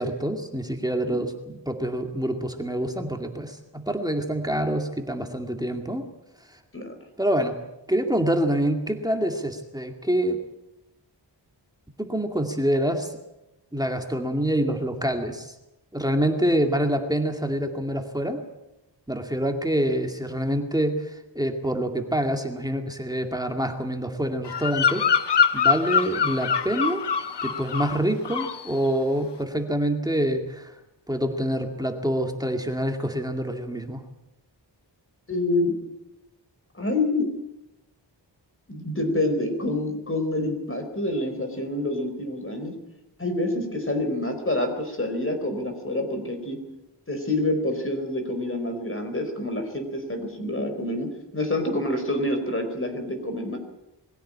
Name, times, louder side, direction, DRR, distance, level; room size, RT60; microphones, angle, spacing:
voice 1, 0.0-6.0 7.2-7.6 7.9-10.4 12.0-13.1 13.7-15.5 15.9-18.4 19.1-25.1 25.5-27.0 27.4-30.7 31.1-34.0, right 1 dB, 10° right, 3 dB, 2.3 m, -26 dB
Bird vocalization bird call bird song, 24.5-28.0 28.3-28.7, left 6 dB, 65° left, 1.1 m, -24 dB
voice 2, 35.3-35.7 36.7-37.3 38.7-42.7 43.2-46.6 47.1-51.1 51.3-53.6, left 1 dB, 30° left, 6 dB, 4.4 m, -27 dB
21.5 x 16.0 x 8.7 m, 0.94 s
wide cardioid pair, 100°, 44 cm